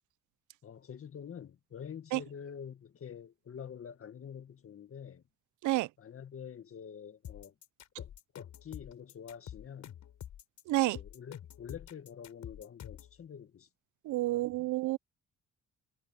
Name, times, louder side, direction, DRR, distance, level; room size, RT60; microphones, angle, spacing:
voice 1, 0.6-5.2 6.0-7.5 8.0-10.0 10.9-13.7 14.3-14.5, left 8 dB, 50° left, 1.9 m, -47 dB
sound 1, 7.2-13.2, left 10 dB, 70° left, 7.8 m, -47 dB
voice 2, 10.7-11.0 14.1-15.0, right 17 dB, 80° right, 0.5 m, -29 dB
cardioid pair, 90°, 30 cm